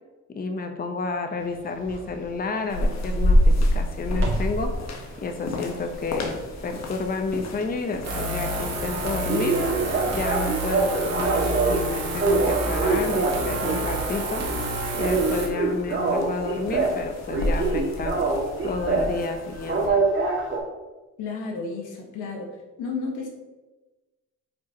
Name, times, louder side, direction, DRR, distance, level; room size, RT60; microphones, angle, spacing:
voice 1, 0.3-4.7 5.2-9.6 10.1-14.4 14.9-18.2 18.6-19.9, left 3 dB, 30° left, 5 dB, 0.8 m, -30 dB
sound 1, 1.9-2.1 4.1-4.6 5.1-7.2 7.5-7.6 8.0-8.1 8.4-8.5 8.7-8.8 9.3-11.8 12.2-13.9 14.3-14.6 14.9-17.0 17.3-19.2 19.6-20.6, right 3 dB, 40° right, 1.9 m, -25 dB
sound 2, 2.7-19.9, left 1 dB, 60° left, 1.2 m, -29 dB
sound 3, 8.0-15.5, right 2 dB, 55° right, 1.9 m, -29 dB
voice 2, 21.2-22.5 22.8-23.3, left 4 dB, 90° left, 1 dB, 1.4 m, -32 dB
8.2 x 4.9 x 2.8 m, 1.2 s
cardioid pair, 90°, 30 cm